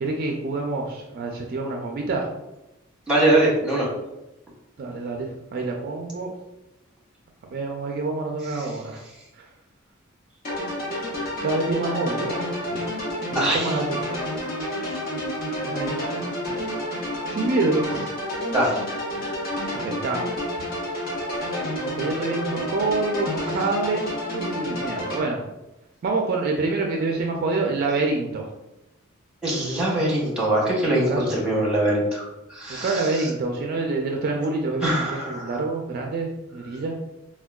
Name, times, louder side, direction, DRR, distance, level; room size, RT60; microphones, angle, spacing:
voice 1, 0.0-2.3 4.8-6.3 7.5-9.0 11.4-12.4 12.7-12.8 13.3-14.0 15.6-16.0 16.5-16.6 17.3-18.1 19.8-20.3 21.8-24.0 24.3-25.4 26.0-28.5 31.1-31.2 32.8-36.9, right 3 dB, 45° right, 1 dB, 0.3 m, -26 dB
voice 2, 3.1-3.9 8.5-8.7 13.3-13.8 14.8-15.0 18.5-18.8 29.4-33.3 34.8-35.6, right 1 dB, 5° right, -4 dB, 0.8 m, -23 dB
sound 1, 10.4-25.2, left 1 dB, 45° left, 0.7 m, -29 dB
4.3 x 2.2 x 2.2 m, 0.94 s
head